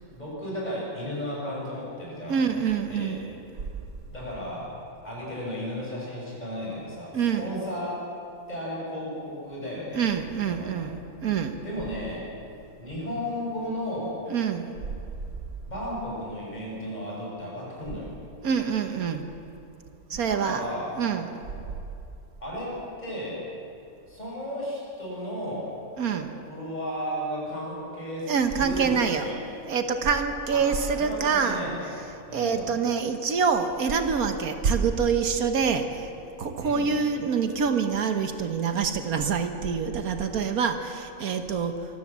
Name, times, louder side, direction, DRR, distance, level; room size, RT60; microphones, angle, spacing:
voice 1, 0.1-2.4 2.9-3.2 4.1-4.7 5.0-8.0 8.5-10.1 10.5-10.9 11.6-12.3 12.8-14.2 15.6-18.1 20.1-21.0 22.4-23.4 24.1-25.7 26.5-29.4 30.5-30.7 30.9-31.9 32.3-32.7 36.6-36.9, equal, 30° left, -5 dB, 7.3 m, -34 dB
voice 2, 2.3-3.3 7.1-7.5 9.9-11.6 14.3-14.7 18.4-19.2 20.1-20.6 21.0-21.3 26.0-26.3 28.3-29.3 29.7-31.6 32.3-36.1 36.4-41.7, right 6 dB, 80° right, 7 dB, 1.6 m, -26 dB
24.5 x 15.5 x 7.4 m, 2.7 s
omnidirectional pair, 1.5 m